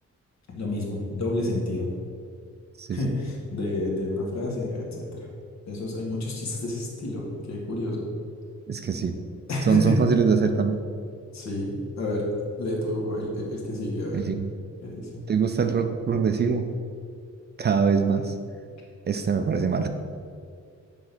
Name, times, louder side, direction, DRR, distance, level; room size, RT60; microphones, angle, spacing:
voice 1, 0.5-1.9 2.9-5.3 5.7-8.1 9.5-10.0 11.3-12.3 12.6-14.2 14.8-15.2, left 2 dB, 65° left, -2 dB, 1.7 m, -29 dB
voice 2, 8.7-9.2 9.7-10.8 14.1-14.5 15.3-16.7 17.6-18.3 19.1-19.9, right 6 dB, 35° right, 7 dB, 0.4 m, -23 dB
7.4 x 3.7 x 6.0 m, 2.2 s
wide cardioid pair, 150°, 29 cm